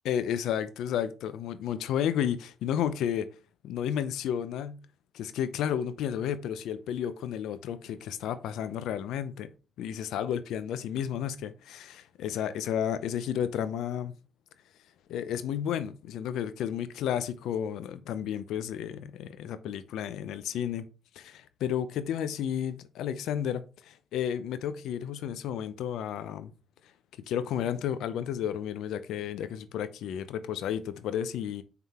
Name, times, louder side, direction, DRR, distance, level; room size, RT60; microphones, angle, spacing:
voice 1, 0.0-3.3 3.6-4.8 5.1-9.5 9.8-14.1 15.1-20.8 21.2-26.5 27.3-31.6, left 9 dB, 85° left, 0.6 m, -32 dB
5.9 x 3.7 x 4.2 m
cardioid pair, 90°, 0 cm